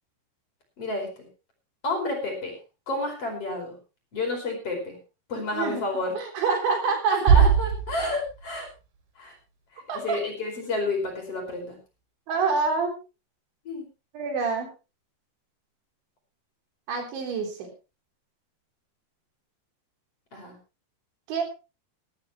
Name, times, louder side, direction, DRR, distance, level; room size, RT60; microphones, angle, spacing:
voice 1, 0.8-1.1 1.8-2.6 2.9-3.8 4.1-5.0 5.3-6.2 7.1-8.7 9.2-9.3 9.7-11.8 13.7-13.9 20.3-20.6, left 2 dB, 35° left, 2 dB, 5.4 m, -30 dB
voice 2, 5.5-5.8 6.1-7.4 9.9-10.2 12.3-12.9 14.1-14.7 16.9-17.7 21.3-21.4, right 4 dB, 90° right, 3 dB, 5.9 m, -26 dB
Bass drum, 7.3-9.0, right 7 dB, 60° right, 4.1 m, -21 dB
19.0 x 12.5 x 3.1 m, 0.30 s
omnidirectional pair, 5.1 m